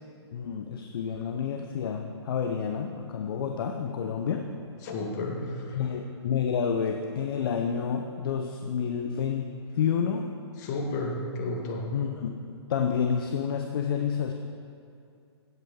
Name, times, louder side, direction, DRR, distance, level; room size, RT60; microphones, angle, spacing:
voice 1, 0.3-4.5 5.7-10.3 11.9-12.4 12.7-14.3, left 7 dB, 55° left, 5 dB, 0.7 m, -29 dB
voice 2, 4.8-5.8 10.6-11.9, left 2 dB, 40° left, 1 dB, 1.8 m, -32 dB
16.0 x 8.1 x 3.7 m, 2.5 s
hypercardioid pair, 135°, 15 cm